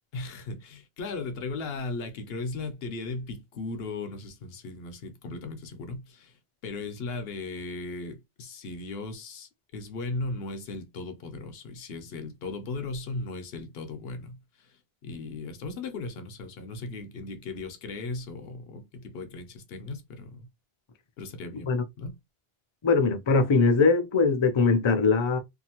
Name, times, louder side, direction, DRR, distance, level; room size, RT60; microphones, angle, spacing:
voice 1, 0.1-6.4 6.6-14.8 15.0-20.5 21.2-22.1, left 3 dB, 70° left, 0.8 m, -37 dB
voice 2, 22.8-25.4, left 4 dB, 45° left, 0.4 m, -21 dB
2.6 x 2.5 x 2.8 m
omnidirectional pair, 1.1 m